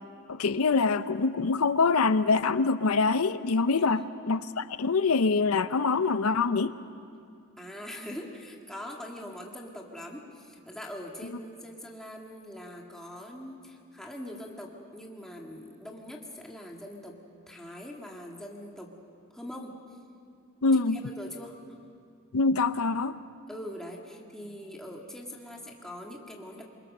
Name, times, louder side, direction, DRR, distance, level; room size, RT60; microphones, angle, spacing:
voice 1, 0.3-6.8 20.6-21.0 22.3-23.2, left 4 dB, 80° left, 12 dB, 0.6 m, -25 dB
voice 2, 3.8-4.1 7.6-17.2 17.5-18.9 19.3-19.8 20.7-21.6 23.5-26.6, left 1 dB, ahead, -1 dB, 1.9 m, -42 dB
27.0 x 23.5 x 6.6 m, 2.4 s
head